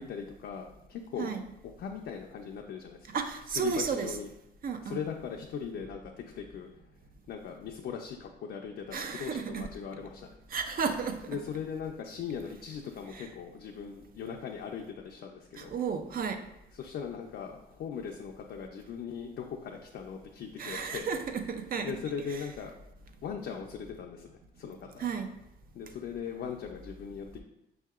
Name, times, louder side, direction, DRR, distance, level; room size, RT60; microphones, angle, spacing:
voice 1, 0.0-1.3 1.8-3.1 3.6-4.3 4.9-6.7 7.3-10.3 11.3-15.7 16.8-21.1 21.8-22.7 23.2-25.0 25.7-27.4, left 7 dB, 60° left, 1 dB, 0.4 m, -39 dB
voice 2, 3.1-4.2 4.6-5.0 8.9-9.7 10.5-11.4 13.1-13.3 15.6-16.4 20.6-22.0 22.3-22.5 25.0-25.3, right 6 dB, 45° right, 7 dB, 0.5 m, -33 dB
5.6 x 2.8 x 2.3 m, 0.85 s
cardioid pair, 90°, 20 cm